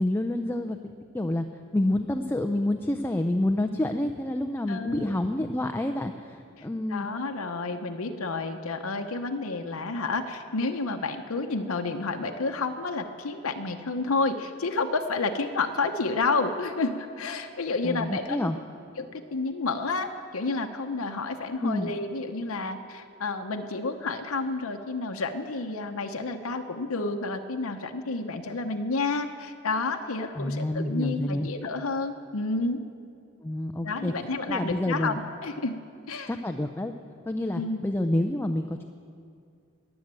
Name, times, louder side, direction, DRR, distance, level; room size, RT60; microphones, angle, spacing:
voice 1, 0.0-1.5 1.7-7.1 17.8-18.6 21.6-21.9 30.4-31.5 33.4-34.1 34.5-35.2 36.3-36.9 37.3-38.8, left 1 dB, 10° left, 6 dB, 0.4 m, -28 dB
voice 2, 4.7-5.2 6.9-18.5 19.0-32.8 33.8-35.8 36.1-36.3 37.5-37.8, left 3 dB, 70° left, 4 dB, 0.8 m, -30 dB
21.0 x 7.9 x 7.5 m, 2.3 s
head